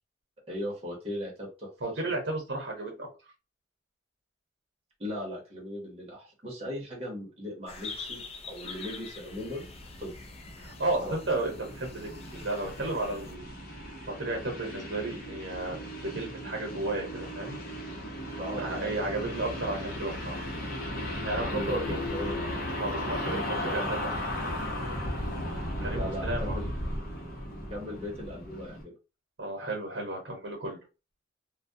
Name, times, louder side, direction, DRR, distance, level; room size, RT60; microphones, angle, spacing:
voice 1, 0.5-1.7 2.0-2.1 5.0-8.2 8.5-9.6 10.0-10.1 11.0-11.2 18.4-19.1 21.3-22.6 23.0-24.1 25.9-26.8 27.7-28.9, left 1 dB, 30° right, -3 dB, 0.8 m, -38 dB
voice 2, 1.8-3.1 10.6-13.5 14.1-17.6 18.6-20.5 21.2-22.0 22.7-24.1 25.5-26.6 29.4-30.8, right 2 dB, 65° right, 0 dB, 0.9 m, -33 dB
sound 1, 7.7-13.4, left 4 dB, 30° left, 0.4 m, -45 dB
sound 2, 9.2-28.8, left 1 dB, 50° left, 0.7 m, -36 dB
2.2 x 2.2 x 2.6 m, 0.30 s
head